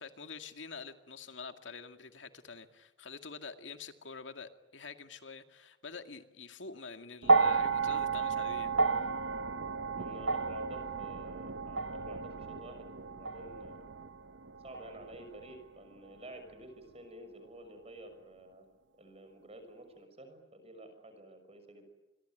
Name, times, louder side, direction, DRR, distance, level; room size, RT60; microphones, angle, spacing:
voice 1, 0.0-9.1, left 4 dB, 90° left, 8 dB, 2.1 m, -47 dB
sound 1, 7.2-15.6 16.6-16.7, right 4 dB, 85° right, 1.0 m, -32 dB
voice 2, 10.0-13.9 14.6-18.7 19.0-21.9, right 1 dB, 35° right, 8 dB, 6.0 m, -51 dB
28.0 x 22.5 x 9.2 m, 1.0 s
head